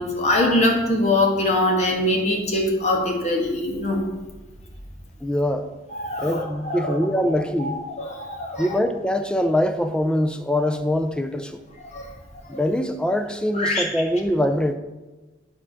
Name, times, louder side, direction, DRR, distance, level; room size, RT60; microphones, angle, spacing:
voice 1, 0.0-4.0 5.9-7.0 7.6-8.7 11.9-12.1 13.5-13.8, left 1 dB, 40° left, 0 dB, 1.3 m, -23 dB
voice 2, 5.2-5.7 6.2-7.8 8.6-11.6 12.5-14.7, left 1 dB, 5° left, 8 dB, 0.4 m, -23 dB
9.8 x 3.6 x 5.6 m, 1.2 s
head